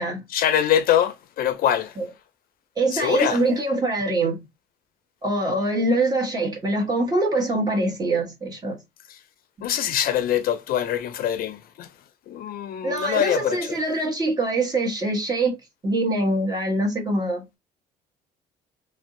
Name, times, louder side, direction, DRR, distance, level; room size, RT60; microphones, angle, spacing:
voice 1, 0.3-2.0 2.9-3.4 9.1-9.2 9.6-11.9 12.3-13.8, left 10 dB, 60° left, 0.4 m, -24 dB
voice 2, 2.8-4.4 5.2-8.8 12.8-15.6 15.8-17.6, right 2 dB, 25° right, 1.2 m, -24 dB
2.5 x 2.1 x 3.6 m
cardioid pair, 110°, 17 cm